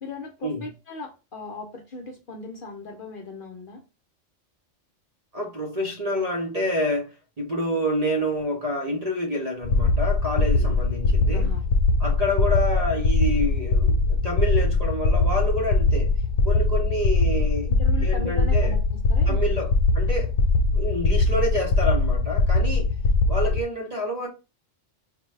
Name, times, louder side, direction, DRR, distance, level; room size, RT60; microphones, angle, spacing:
voice 1, 0.0-3.8 10.3-10.7 11.3-11.6 17.7-19.6, left 2 dB, 50° left, 0.8 m, -38 dB
voice 2, 5.3-11.5 12.0-16.1 16.4-17.7 18.0-18.7 19.3-20.4 20.7-22.9 23.3-24.3, equal, 35° right, 0.8 m, -28 dB
sound 1, 9.6-23.6, left 3 dB, 80° left, 1.0 m, -21 dB
5.0 x 2.2 x 3.2 m
omnidirectional pair, 1.3 m